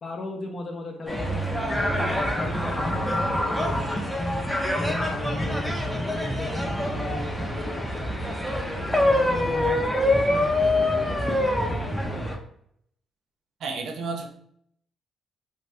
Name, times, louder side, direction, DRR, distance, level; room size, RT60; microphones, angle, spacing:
voice 1, 0.0-4.1 4.7-8.1 8.8-11.4 12.0-12.3, left 2 dB, 45° left, 2 dB, 0.5 m, -37 dB
sound 1, 1.1-12.4, left 1 dB, 5° left, 0.6 m, -25 dB
voice 2, 13.6-14.3, right 4 dB, 70° right, 3 dB, 0.5 m, -31 dB
2.6 x 2.2 x 3.2 m, 0.67 s
cardioid pair, 90°, 0 cm